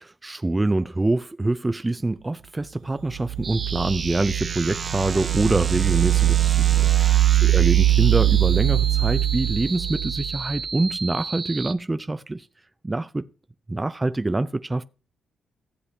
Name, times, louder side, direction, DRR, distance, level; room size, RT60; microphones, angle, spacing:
voice 1, 0.2-12.5 12.8-13.3 13.7-14.9, right 2 dB, 20° right, 0.5 m, -25 dB
sound 1, 3.1-10.6, right 13 dB, 90° right, 0.7 m, -21 dB
sound 2, 3.4-11.7, right 5 dB, 45° right, 0.8 m, -33 dB
15.0 x 8.2 x 2.8 m
cardioid pair, 80°, 0 cm